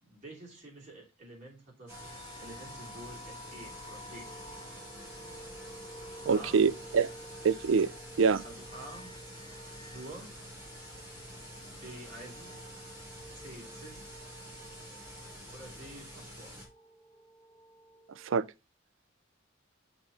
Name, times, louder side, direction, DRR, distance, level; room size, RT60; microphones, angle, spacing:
voice 1, 0.0-4.3 6.3-6.7 7.8-7.9 8.4-9.2 9.8-10.4 11.6-12.6 13.3-14.1 15.5-16.6, right 1 dB, 35° right, 3.2 m, -49 dB
sound 1, 1.9-18.4, equal, 15° left, 1.6 m, -51 dB
sound 2, 1.9-16.6, equal, 10° right, 3.5 m, -48 dB
voice 2, 6.3-7.1 7.4-7.9 8.2-8.4 18.2-18.4, right 5 dB, 80° right, 0.4 m, -25 dB
7.0 x 4.0 x 5.6 m
head